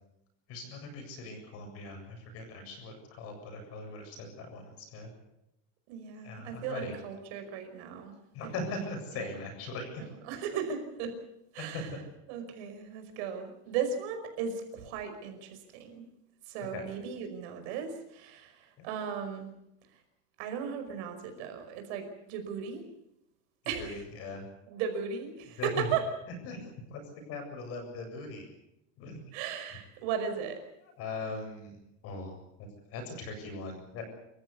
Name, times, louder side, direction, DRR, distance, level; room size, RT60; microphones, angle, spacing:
voice 1, 0.5-5.1 6.2-6.9 8.3-10.0 11.6-12.0 16.7-16.8 18.8-18.9 23.8-24.4 25.6-25.9 26.4-26.6 26.9-27.0 27.3-28.5 29.0-29.2 31.0-31.7 32.0-32.3 32.9-34.0, left 3 dB, 40° left, 5 dB, 7.7 m, -40 dB
voice 2, 5.9-8.2 8.4-8.9 9.2-9.4 10.0-11.2 11.5-11.9 12.3-16.1 16.5-19.5 20.4-22.9 23.7-24.0 24.7-26.1 29.3-30.6, right 7 dB, 65° right, 6 dB, 5.4 m, -36 dB
27.5 x 15.0 x 8.3 m, 0.84 s
cardioid pair, 180°, 36 cm